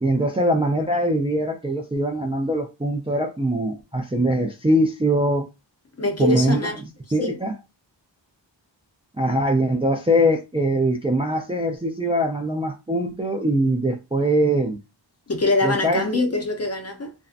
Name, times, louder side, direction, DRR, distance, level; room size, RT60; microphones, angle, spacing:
voice 1, 0.0-5.5 6.2-6.6 7.1-7.5 9.2-14.8 15.6-16.0, right 1 dB, 15° right, 0.3 m, -22 dB
voice 2, 6.0-6.8 7.2-7.4 15.3-17.1, left 2 dB, 35° left, 0.6 m, -23 dB
2.5 x 2.1 x 2.4 m
wide cardioid pair, 80°, 45 cm